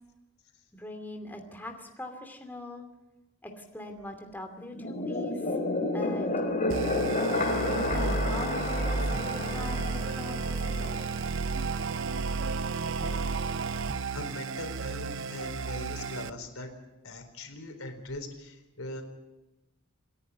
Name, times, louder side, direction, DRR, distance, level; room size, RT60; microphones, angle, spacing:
voice 1, 0.7-2.8 3.4-5.5 5.9-6.5 6.8-7.3 7.7-10.9, left 1 dB, 10° left, 4 dB, 2.7 m, -42 dB
sound 1, 4.7-11.3, left 2 dB, 35° left, 2.7 m, -31 dB
sound 2, 6.7-16.3, right 4 dB, 65° right, 0.7 m, -32 dB
voice 2, 14.1-16.7 17.0-19.0, left 1 dB, 85° left, 5 dB, 4.2 m, -41 dB
27.5 x 10.5 x 9.7 m, 1.0 s
head